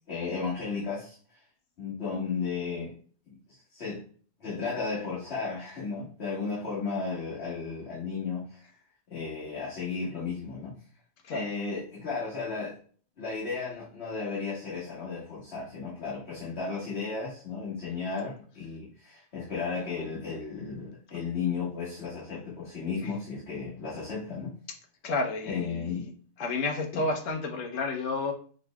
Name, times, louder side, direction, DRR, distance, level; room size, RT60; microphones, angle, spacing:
voice 1, 0.1-1.2 1.8-2.9 3.3-3.4 3.7-4.0 4.4-8.6 9.1-10.7 11.3-12.8 13.2-24.5 25.5-26.0 26.9-27.0, left 5 dB, 55° left, 1.7 m, -34 dB
voice 2, 25.0-26.0 26.4-28.3, left 3 dB, 75° left, 1.2 m, -31 dB
5.1 x 4.0 x 2.3 m
omnidirectional pair, 1.4 m